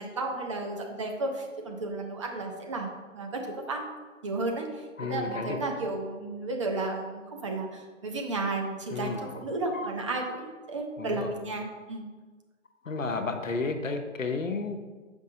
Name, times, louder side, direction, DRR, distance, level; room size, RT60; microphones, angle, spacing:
voice 1, 0.0-2.9 3.1-3.8 4.2-12.1, right 2 dB, 25° right, 2 dB, 0.6 m, -33 dB
voice 2, 5.0-5.6 8.9-9.3 9.7-9.9 11.0-11.3 12.8-14.8, left 4 dB, 90° left, 5 dB, 0.9 m, -32 dB
7.3 x 5.3 x 2.7 m, 1.4 s
figure-of-eight pair, 135°, 38 cm